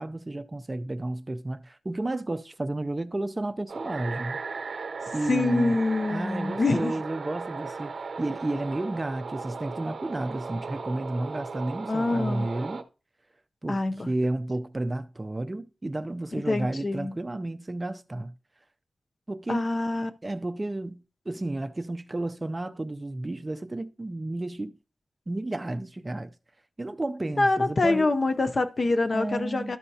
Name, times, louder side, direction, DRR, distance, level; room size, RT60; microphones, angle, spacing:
voice 1, 0.0-4.4 5.1-5.8 6.1-12.8 13.6-13.8 14.1-18.3 19.3-19.6 20.2-24.7 25.3-26.3 26.8-28.1 29.1-29.8, right 2 dB, 25° right, 0.4 m, -32 dB
sound 1, 3.7-12.8, right 4 dB, 70° right, 0.7 m, -36 dB
voice 2, 5.3-7.0 11.9-12.5 13.7-14.1 16.5-17.2 19.5-20.1 27.4-29.8, left 2 dB, 45° left, 0.6 m, -25 dB
12.5 x 5.5 x 2.7 m
wide cardioid pair, 135°, 0 cm